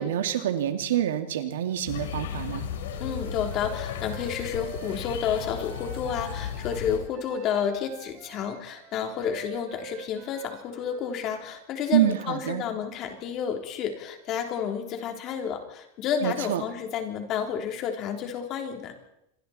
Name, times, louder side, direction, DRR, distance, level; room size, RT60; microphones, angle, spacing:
voice 1, 0.0-2.7 11.9-12.6 16.2-16.6, right 11 dB, 85° right, 7 dB, 2.4 m, -26 dB
sound 1, 1.9-7.0, left 8 dB, 80° left, 4.3 m, -35 dB
Wind instrument woodwind instrument, 2.9-11.3, right 10 dB, 35° right, 2.1 m, -46 dB
voice 2, 3.0-18.9, left 8 dB, 35° left, 4 dB, 3.6 m, -30 dB
26.5 x 24.0 x 4.4 m, 0.81 s
supercardioid pair, 150°, 0 cm